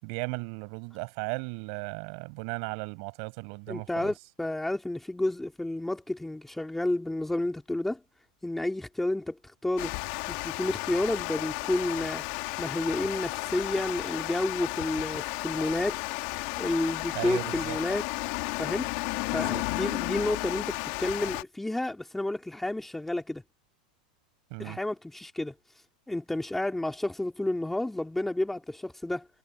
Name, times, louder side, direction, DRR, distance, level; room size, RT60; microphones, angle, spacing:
voice 1, 0.0-4.1 17.1-17.8 19.3-19.6 24.5-24.8, right 39 dB, 60° right, 7.7 m, -36 dB
voice 2, 3.7-8.0 8.4-9.9 10.3-12.2 12.6-16.0 16.6-18.0 18.6-18.9 19.3-23.4 24.6-25.5 26.1-29.3, left 1 dB, 5° left, 3.3 m, -30 dB
Water, 9.8-21.4, left 27 dB, 60° left, 2.4 m, -33 dB
hypercardioid pair, 105°, 4 cm